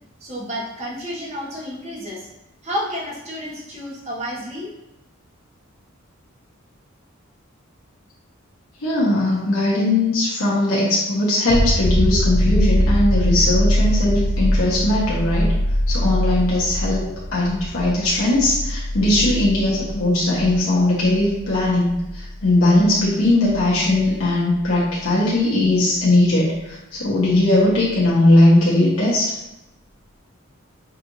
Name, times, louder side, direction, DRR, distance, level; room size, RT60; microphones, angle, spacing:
voice 1, 0.2-2.3 2.6-4.7, equal, 30° right, -5 dB, 1.2 m, -30 dB
voice 2, 8.8-15.5 15.9-29.3, left 1 dB, 90° left, -6 dB, 1.1 m, -19 dB
sound 1, 11.5-25.0 27.7-27.8, equal, 80° right, 0.8 m, -23 dB
5.8 x 2.6 x 3.0 m, 0.91 s
head